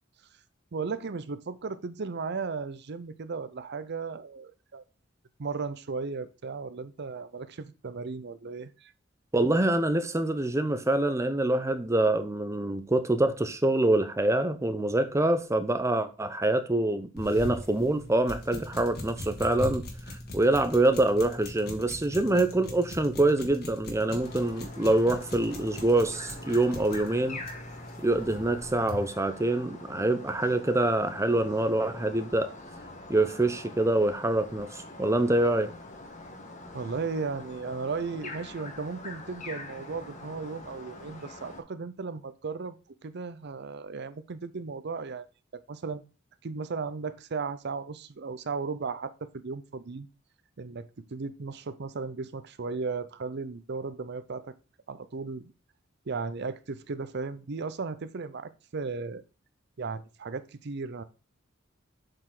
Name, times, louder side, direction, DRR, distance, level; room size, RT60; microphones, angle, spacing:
voice 1, 0.7-4.8 5.4-8.9 36.7-45.3 45.5-46.0 46.4-50.1 50.6-54.5 54.9-55.5 56.1-59.2 59.8-61.0, right 4 dB, 60° right, 0.6 m, -36 dB
voice 2, 9.3-19.8 20.3-27.4 28.0-32.5 33.1-35.7, right 2 dB, 15° right, 0.7 m, -25 dB
sound 1, 17.2-29.1, left 1 dB, 55° left, 1.9 m, -40 dB
sound 2, 24.2-41.6, left 2 dB, 40° left, 1.5 m, -44 dB
7.7 x 4.8 x 3.8 m
head